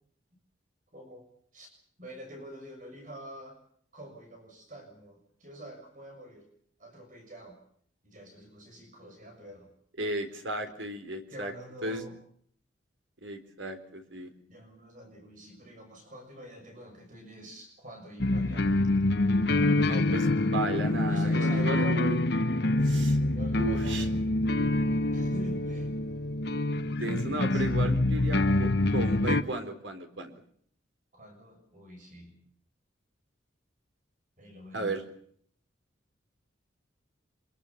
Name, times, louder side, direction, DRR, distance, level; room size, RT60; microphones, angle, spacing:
voice 1, 0.9-1.3 1.5-1.7 2.0-3.6 3.9-6.4 6.8-7.6 8.0-9.7 11.3-12.1 14.5-18.8 21.1-22.1 23.3-24.2 25.1-25.9 27.5-27.9 31.1-32.4 34.4-34.9, equal, 40° right, 3 dB, 6.7 m, -46 dB
voice 2, 10.0-11.5 11.8-12.0 13.2-14.3 19.8-22.2 22.8-23.2 23.6-24.1 26.9-30.3 34.7-35.0, right 2 dB, 75° right, 7 dB, 4.1 m, -34 dB
sound 1, 18.2-29.4, left 2 dB, 55° left, 1.0 m, -26 dB
25.0 x 22.5 x 7.3 m, 0.63 s
head